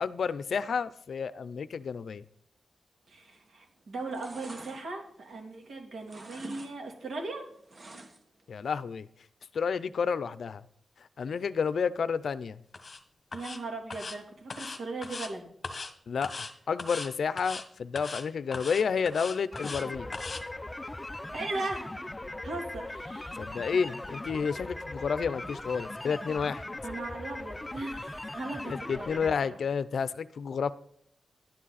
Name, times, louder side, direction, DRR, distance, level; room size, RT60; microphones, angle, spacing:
voice 1, 0.0-2.2 8.5-9.1 9.5-10.6 11.2-12.6 16.1-20.1 23.4-26.6 28.7-30.7, left 6 dB, 65° left, 15 dB, 0.5 m, -30 dB
voice 2, 3.1-7.5 13.3-15.5 21.3-21.9 22.4-23.4 26.8-29.6, right 3 dB, 70° right, 1 dB, 3.1 m, -38 dB
sound 1, 3.3-3.6 3.9-5.7 6.0-6.7 7.0-8.4 8.8-8.9, right 2 dB, 35° right, 1.5 m, -47 dB
sound 2, 12.7-13.0 13.3-13.6 13.9-14.2 14.5-15.3 15.6-15.9 16.2-16.5 16.8-17.1 17.4-17.6 18.0-18.2 18.5-19.8 20.1-20.4, left 3 dB, 35° left, 1.2 m, -39 dB
sound 3, 19.5-29.4, left 1 dB, 10° left, 0.4 m, -39 dB
11.5 x 10.0 x 4.1 m, 0.67 s
wide cardioid pair, 175°, 0 cm